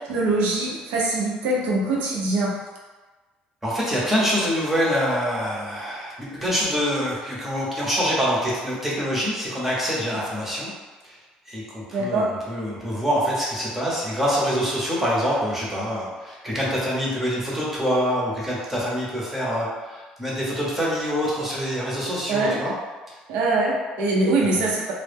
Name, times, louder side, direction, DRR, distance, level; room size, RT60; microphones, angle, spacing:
voice 1, 0.1-2.6 11.9-12.3 22.3-22.6 23.3-24.8, right 2 dB, 90° right, -3 dB, 0.6 m, -23 dB
voice 2, 3.6-10.7 11.0-11.2 11.5-22.7 24.5-24.6, equal, 5° right, -6 dB, 0.8 m, -25 dB
2.1 x 2.0 x 3.3 m, 1.3 s
cardioid pair, 130°, 3 cm